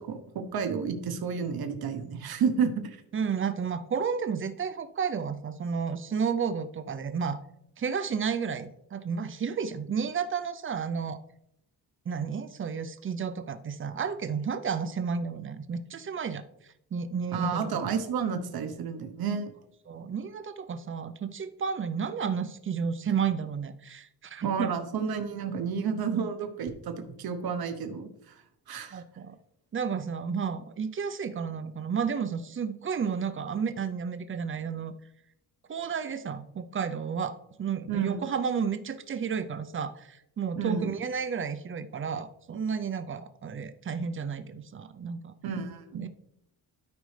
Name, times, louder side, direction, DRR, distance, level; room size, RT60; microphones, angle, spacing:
voice 1, 0.0-3.0 17.3-19.5 24.4-28.1 28.7-29.0 37.9-38.2 40.6-40.9 45.4-46.1, right 6 dB, 65° right, 7 dB, 0.9 m, -31 dB
voice 2, 3.1-7.4 7.8-11.2 12.1-16.4 16.9-17.7 19.9-24.7 28.9-29.4 29.7-34.9 35.7-45.3 45.9-46.1, right 6 dB, 30° right, 11 dB, 0.5 m, -32 dB
12.5 x 5.3 x 3.2 m, 0.79 s
wide cardioid pair, 165°, 39 cm